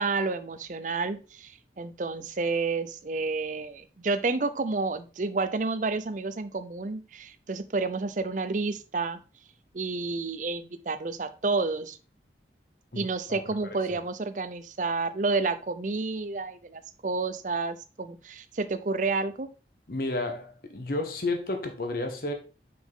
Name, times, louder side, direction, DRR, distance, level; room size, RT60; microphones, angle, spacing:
voice 1, 0.0-9.2 9.7-12.0 12.9-19.5, right 3 dB, 45° right, 0.6 m, -30 dB
voice 2, 12.9-14.0 19.9-22.3, left 2 dB, 55° left, 1.3 m, -32 dB
6.1 x 6.0 x 3.7 m
head